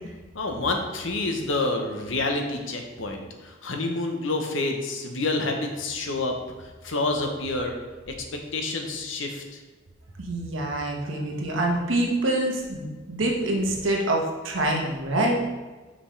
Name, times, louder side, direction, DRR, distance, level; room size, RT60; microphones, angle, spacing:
voice 1, 0.3-6.4 6.8-7.8 8.1-9.6, left 2 dB, 75° left, 3 dB, 0.9 m, -28 dB
voice 2, 10.2-15.4, right 1 dB, 75° right, 0 dB, 1.1 m, -26 dB
5.7 x 5.2 x 3.2 m, 1.3 s
head